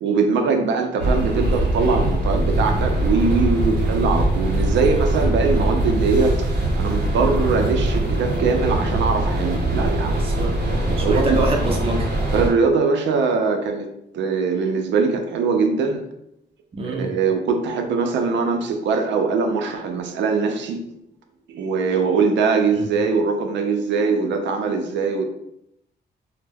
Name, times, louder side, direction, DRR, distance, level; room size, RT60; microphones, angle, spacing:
voice 1, 0.0-6.5 6.8-10.2 11.0-11.4 12.3-13.9 14.1-16.1 16.9-20.8 21.5-25.2, right 4 dB, 85° right, 4 dB, 0.4 m, -21 dB
sound 1, 1.0-12.5, right 1 dB, 60° right, 0.8 m, -22 dB
voice 2, 10.2-10.6 10.9-12.1 16.7-17.1 22.7-22.9, right 2 dB, 30° right, 1 dB, 0.4 m, -26 dB
2.2 x 2.0 x 3.3 m, 0.79 s
cardioid pair, 110°, 18 cm